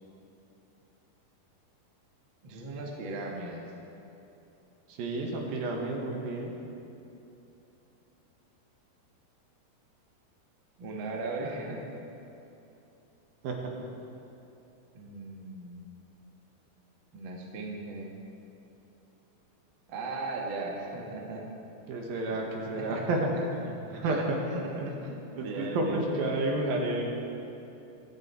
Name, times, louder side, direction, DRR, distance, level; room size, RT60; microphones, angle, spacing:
voice 1, 2.4-3.7 10.8-11.9 14.9-15.9 17.1-18.1 19.9-21.4 22.3-22.4 22.6-23.1 24.0-26.4, right 2 dB, 40° right, -2 dB, 1.9 m, -38 dB
voice 2, 4.9-6.5 13.4-13.7 21.9-24.4 24.8-24.9 25.4-27.0, right 2 dB, 70° right, 0 dB, 3.1 m, -31 dB
24.0 x 10.5 x 4.5 m, 2.9 s
omnidirectional pair, 4.5 m